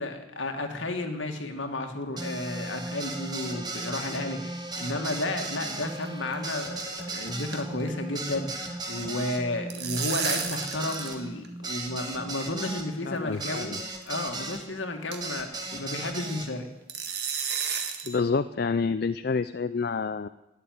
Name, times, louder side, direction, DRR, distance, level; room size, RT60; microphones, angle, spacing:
voice 1, 0.0-13.8 14.1-16.7, left 2 dB, 70° left, 5 dB, 2.0 m, -32 dB
sound 1, 2.2-14.6 15.2-16.5, right 2 dB, 20° right, 1.5 m, -36 dB
sound 2, 4.9-5.6 5.9-6.1 6.3-6.4 6.8-7.0 7.3-8.6 9.4-11.2 11.4-11.5 12.4-12.5 13.4-13.6 14.0-14.1 14.5-14.6 15.1-15.4 16.9-18.2, right 7 dB, 55° right, 1.8 m, -33 dB
voice 2, 13.1-13.8 15.7-15.8 18.0-20.3, left 4 dB, 50° left, 11 dB, 0.4 m, -28 dB
12.5 x 10.0 x 9.5 m, 0.94 s
head